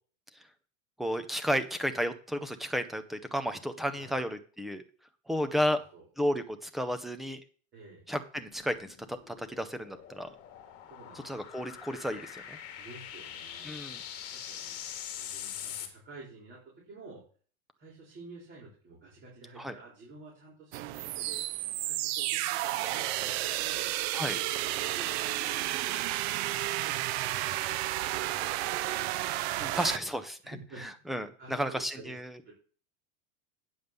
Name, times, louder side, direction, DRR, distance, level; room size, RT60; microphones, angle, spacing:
voice 1, 1.0-4.8 5.3-5.8 6.2-7.4 8.1-10.3 11.2-12.6 13.6-14.0 19.6-19.7 24.1-24.4 29.6-30.3 31.1-32.4, equal, ahead, 9 dB, 0.3 m, -32 dB
voice 2, 5.5-6.1 7.7-8.0 10.9-11.3 12.8-13.8 14.3-17.2 17.8-21.4 21.8-23.9 24.3-27.7 28.0-29.0 29.4-29.9 30.4-31.1 31.4-32.2 32.4-32.5, right 3 dB, 25° right, -4 dB, 4.6 m, -50 dB
sound 1, 8.4-15.9, left 9 dB, 35° left, 2.2 m, -43 dB
sound 2, 20.7-30.0, right 15 dB, 50° right, 0.7 m, -32 dB
9.5 x 5.2 x 6.8 m, 0.41 s
supercardioid pair, 145°, 41 cm